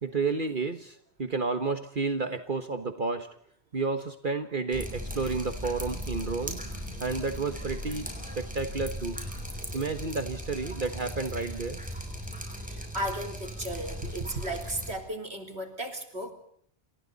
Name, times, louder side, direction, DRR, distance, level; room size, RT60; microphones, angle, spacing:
voice 1, 0.0-3.3 3.7-6.6 7.0-8.1 8.3-9.3 9.7-11.8, right 4 dB, 50° right, 8 dB, 1.4 m, -31 dB
Drip, 4.7-15.0, equal, 5° right, 6.9 m, -38 dB
voice 2, 12.7-16.3, right 1 dB, 65° right, 4 dB, 4.0 m, -35 dB
28.5 x 28.5 x 4.1 m, 0.63 s
omnidirectional pair, 1.1 m